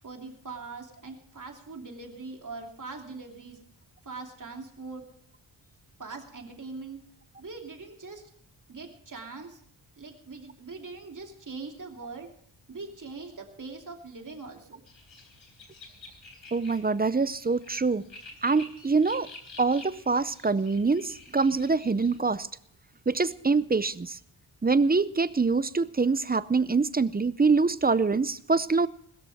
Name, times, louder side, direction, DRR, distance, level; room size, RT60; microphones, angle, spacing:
voice 1, 0.0-3.6 4.0-5.0 6.0-7.0 7.4-8.3 8.7-9.6 10.0-12.3 12.7-14.8, right 4 dB, 40° right, 2 dB, 2.9 m, -42 dB
sound 1, 14.9-22.2, left 2 dB, 70° left, 3.9 m, -49 dB
voice 2, 16.5-18.0 18.4-19.3 19.6-22.5 23.1-24.2 24.6-28.9, right 4 dB, 20° right, 16 dB, 0.5 m, -25 dB
21.0 x 13.5 x 3.5 m, 0.63 s
wide cardioid pair, 165°, 47 cm